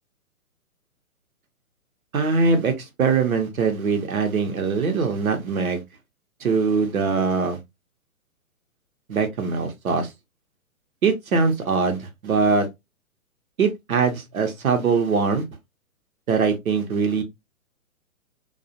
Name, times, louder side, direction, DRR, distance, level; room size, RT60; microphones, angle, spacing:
voice 1, 2.1-5.8 6.4-7.6 9.1-10.1 11.0-12.7 13.6-15.4 16.3-17.2, right 5 dB, 75° right, 0.9 m, -22 dB
2.4 x 2.3 x 2.7 m
hypercardioid pair, 135°, 42 cm